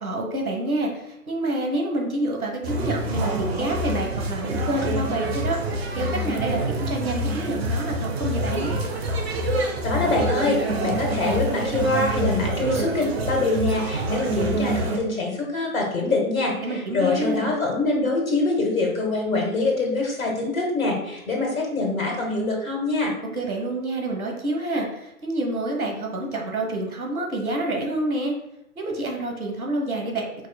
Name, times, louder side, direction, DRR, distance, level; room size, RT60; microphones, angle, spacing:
voice 1, 0.0-5.6 6.0-8.7 16.6-17.6 23.3-28.3 28.8-30.2, right 1 dB, 75° right, 1 dB, 1.2 m, -27 dB
sound 1, 2.6-15.0, right 1 dB, 45° right, 0.6 m, -26 dB
voice 2, 9.8-23.1, left 2 dB, 70° left, -1 dB, 1.4 m, -24 dB
4.6 x 3.8 x 2.2 m, 0.87 s
figure-of-eight pair, 135°, 43 cm